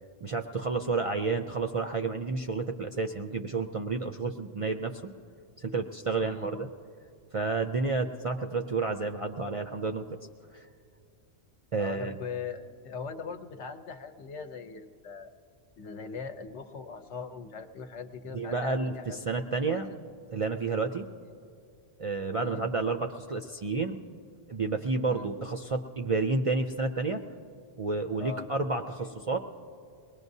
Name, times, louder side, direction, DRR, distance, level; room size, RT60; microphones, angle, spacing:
voice 1, 0.2-5.0 5.6-6.7 7.3-10.1 10.5-10.7 11.7-12.1 18.3-19.9 20.3-21.1 22.0-24.0 24.5-27.2 27.8-29.4, right 3 dB, 50° right, 4 dB, 0.4 m, -30 dB
voice 2, 6.2-6.7 11.8-15.3 15.8-19.2 19.7-20.0 22.4-22.7 25.1-25.3 28.2-28.5, left 5 dB, 80° left, 6 dB, 1.1 m, -40 dB
23.5 x 19.5 x 2.7 m, 2.4 s
omnidirectional pair, 1.2 m